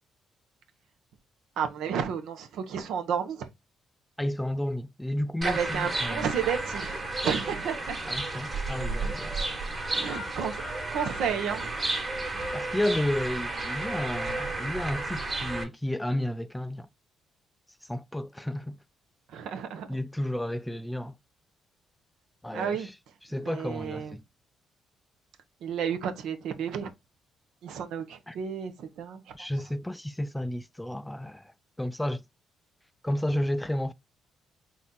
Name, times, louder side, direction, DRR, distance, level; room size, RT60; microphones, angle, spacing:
voice 1, 1.6-3.5 5.4-8.0 9.9-10.6 10.9-11.7 12.3-12.5 19.3-19.9 22.5-22.9 23.4-24.1 25.6-26.9 27.6-29.5, right 7 dB, 80° right, 0.9 m, -32 dB
voice 2, 4.2-6.3 8.1-9.4 12.5-16.9 17.8-18.8 19.9-21.2 22.4-22.9 23.2-24.2 28.3-28.4 29.3-32.2 33.0-33.9, left 1 dB, 5° left, 0.3 m, -32 dB
sound 1, 5.4-15.6, right 2 dB, 30° right, 1.6 m, -32 dB
4.1 x 2.5 x 3.9 m
cardioid pair, 90°, 0 cm